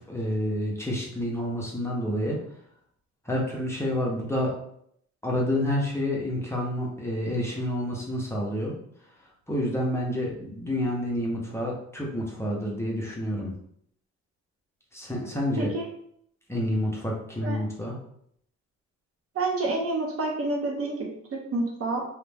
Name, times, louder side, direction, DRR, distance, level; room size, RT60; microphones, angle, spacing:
voice 1, 0.1-2.4 3.2-4.5 5.2-8.8 9.5-13.5 14.9-15.7 16.5-18.0, left 1 dB, 10° left, -4 dB, 0.6 m, -28 dB
voice 2, 19.3-22.0, right 2 dB, 50° right, 0 dB, 0.7 m, -29 dB
2.4 x 2.1 x 3.2 m, 0.70 s
cardioid pair, 90°, 30 cm